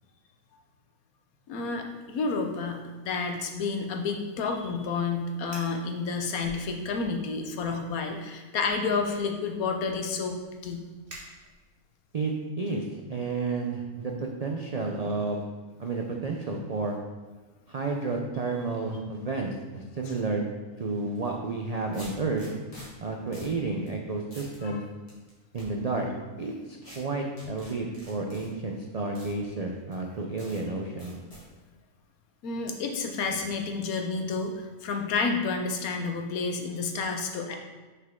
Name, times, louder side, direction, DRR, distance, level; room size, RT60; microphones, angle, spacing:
voice 1, 1.5-10.4 10.6-10.8 24.6-24.8 32.4-37.6, left 4 dB, 80° left, 4 dB, 1.2 m, -30 dB
Fire, 5.5-5.8 6.4-7.2 7.5-7.9 8.6-11.9, right 1 dB, 50° right, 1.5 m, -49 dB
voice 2, 12.1-15.4 15.8-17.0 17.7-20.4 20.8-22.4 23.0-24.8 25.5-26.1 26.4-31.1, right 3 dB, 75° right, 1 dB, 0.3 m, -31 dB
sound 1, 21.2-21.3 21.9-22.9 23.3-23.5 23.9-24.0 24.3-24.6 25.1-25.6 26.8-27.0 27.4-28.5 29.1-29.3 29.9-30.0 30.4-30.6 31.0-31.4, left 1 dB, 25° left, 2.1 m, -47 dB
5.9 x 5.5 x 3.6 m, 1.3 s
omnidirectional pair, 1.5 m